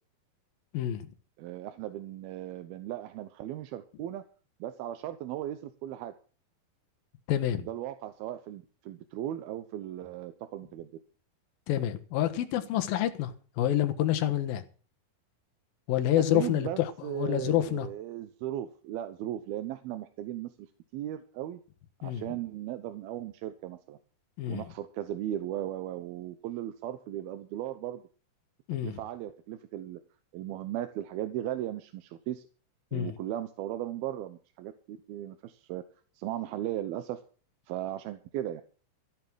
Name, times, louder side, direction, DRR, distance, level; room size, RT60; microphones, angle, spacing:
voice 1, 0.7-1.1 7.3-7.6 11.7-14.6 15.9-17.9 22.0-22.2 24.4-24.6 28.7-29.0 32.9-33.2, left 12 dB, 75° left, 3.0 m, -28 dB
voice 2, 1.4-4.2 4.6-6.1 7.6-10.9 16.2-20.7 20.9-21.6 22.0-24.0 24.4-28.0 28.8-30.0 30.3-32.5 32.9-35.8 36.2-37.2 37.7-38.6, right 12 dB, 90° right, 2.9 m, -37 dB
14.0 x 9.4 x 6.2 m
omnidirectional pair, 4.2 m